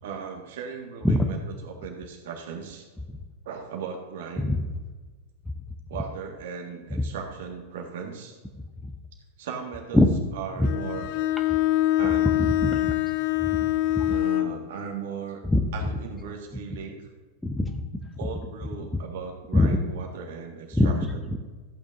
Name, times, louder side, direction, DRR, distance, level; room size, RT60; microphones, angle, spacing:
voice 1, 0.0-2.9 3.5-4.6 5.9-8.4 9.4-10.0 10.3-11.1 12.0-12.5 14.1-15.5 15.7-17.1 18.2-21.3, right 6 dB, 55° right, 2 dB, 1.8 m, -37 dB
Bowed string instrument, 10.6-14.6, left 14 dB, 45° left, 0.5 m, -24 dB
voice 2, 12.4-12.9 14.0-14.1 15.5-15.6 17.4-17.8 19.5-19.8 20.7-20.9 21.3-21.4, left 1 dB, 5° left, 5 dB, 0.8 m, -22 dB
14.5 x 8.8 x 2.7 m, 1.3 s
figure-of-eight pair, 90°, 0 cm